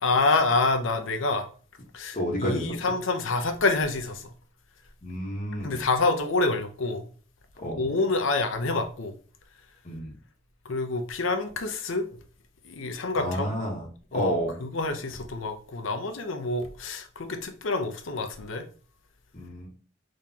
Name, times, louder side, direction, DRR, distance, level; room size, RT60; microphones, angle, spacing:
voice 1, 0.0-1.5 1.9-4.3 5.6-7.1 7.8-9.1 10.6-12.1 12.6-13.5 14.1-18.6, left 3 dB, 80° left, 0.7 m, -27 dB
voice 2, 2.1-2.7 5.0-5.8 7.6-7.8 9.8-10.1 13.2-14.6 19.3-19.7, equal, 40° left, 1.1 m, -30 dB
3.7 x 3.2 x 2.7 m
head